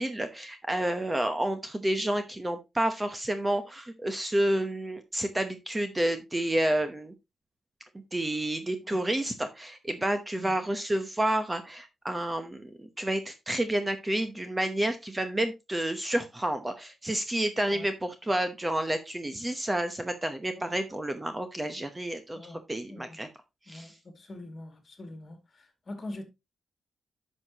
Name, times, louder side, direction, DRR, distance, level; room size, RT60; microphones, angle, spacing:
voice 1, 0.0-7.1 8.1-22.4 22.7-23.3 23.7-23.9, right 1 dB, 15° right, 0.9 m, -30 dB
voice 2, 22.3-23.2 23.7-26.3, left 1 dB, 35° left, 2.4 m, -44 dB
10.5 x 6.4 x 2.9 m
wide cardioid pair, 125°, 0 cm